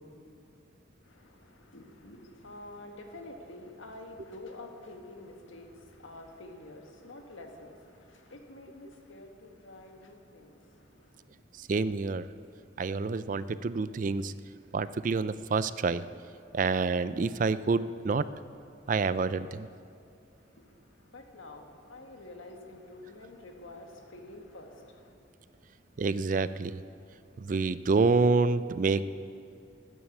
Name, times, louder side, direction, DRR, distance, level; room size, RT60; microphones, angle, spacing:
voice 1, 1.0-10.6 10.9-11.0 20.6-20.7 21.0-25.1, left 2 dB, 90° left, 3 dB, 1.6 m, -48 dB
voice 2, 11.7-12.3 12.8-14.3 14.7-16.0 16.5-18.3 18.9-19.7 26.0-26.8 27.4-29.1, right 4 dB, 40° right, 15 dB, 0.4 m, -27 dB
13.0 x 9.3 x 8.5 m, 2.5 s
head